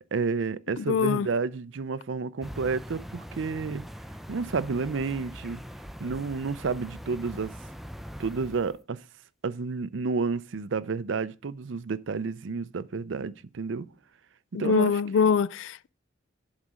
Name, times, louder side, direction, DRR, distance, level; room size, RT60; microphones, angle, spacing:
voice 1, 0.1-3.8 4.3-5.6 6.0-7.5 8.2-9.0 9.4-13.9 14.6-15.0, right 4 dB, 70° right, 0.5 m, -30 dB
voice 2, 0.8-1.3 14.5-15.9, left 6 dB, 70° left, 0.3 m, -24 dB
sound 1, 2.4-8.8, equal, ahead, 0.4 m, -42 dB
11.0 x 4.1 x 6.2 m
head